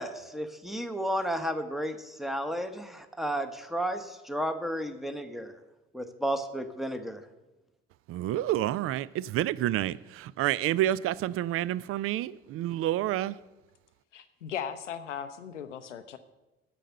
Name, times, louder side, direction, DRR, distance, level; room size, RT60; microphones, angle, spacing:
voice 1, 0.0-5.6 5.9-7.2, equal, ahead, 1.0 m, -33 dB
voice 2, 8.1-13.3, right 13 dB, 40° right, 0.4 m, -29 dB
voice 3, 14.1-16.2, left 8 dB, 85° left, 0.6 m, -37 dB
10.0 x 6.9 x 7.6 m
figure-of-eight pair, 50°, 36 cm